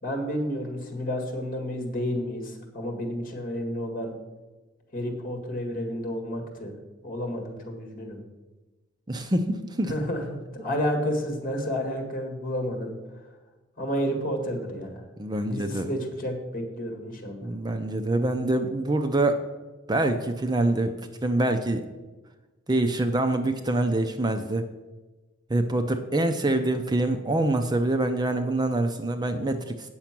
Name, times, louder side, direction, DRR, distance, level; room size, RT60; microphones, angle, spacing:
voice 1, 0.0-4.1 4.9-6.8 7.0-8.2 9.9-12.9 13.8-15.0 15.4-17.5, equal, 45° left, 4 dB, 1.9 m, -31 dB
voice 2, 9.1-9.9 15.2-15.9 17.4-19.4 19.9-20.9 21.2-21.8 22.7-24.6 25.5-29.9, right 2 dB, 20° right, 7 dB, 0.5 m, -25 dB
8.7 x 6.8 x 5.9 m, 1.2 s
head